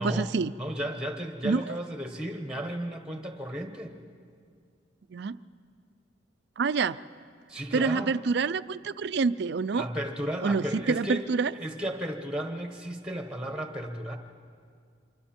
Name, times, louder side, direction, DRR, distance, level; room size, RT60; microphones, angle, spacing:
voice 1, 0.0-0.5 1.4-1.8 5.1-5.4 6.6-7.0 7.7-9.9 10.4-11.5, right 4 dB, 60° right, 15 dB, 0.4 m, -27 dB
voice 2, 0.6-4.0 7.5-8.1 9.7-11.3 11.5-14.2, equal, 5° right, 5 dB, 1.1 m, -34 dB
25.5 x 24.0 x 4.4 m, 2.2 s
head